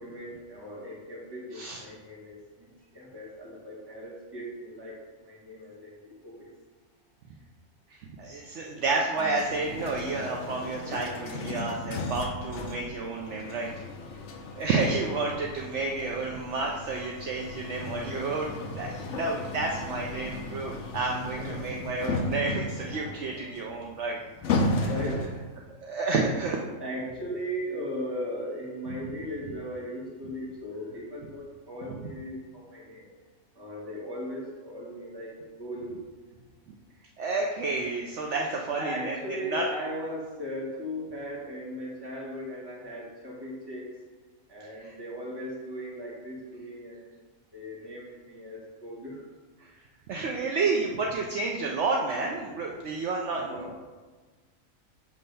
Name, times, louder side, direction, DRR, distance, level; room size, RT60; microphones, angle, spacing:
voice 1, 0.0-2.7 2.9-5.0 5.2-6.5 14.5-14.7 21.4-21.9 24.8-25.4 26.8-33.0 33.6-36.0 38.3-43.9 44.5-47.1 47.5-49.2 53.3-53.8, equal, 15° right, -6 dB, 1.9 m, -38 dB
voice 2, 7.9-13.7 14.5-24.2 24.7-24.9 25.8-26.6 31.9-32.0 37.2-39.6 44.8-44.9 49.6-49.7 50.1-53.8, right 3 dB, 65° right, 0 dB, 0.9 m, -30 dB
sound 1, 9.1-25.5, left 2 dB, 65° left, 1.0 m, -35 dB
7.3 x 3.3 x 5.4 m, 1.3 s
omnidirectional pair, 1.4 m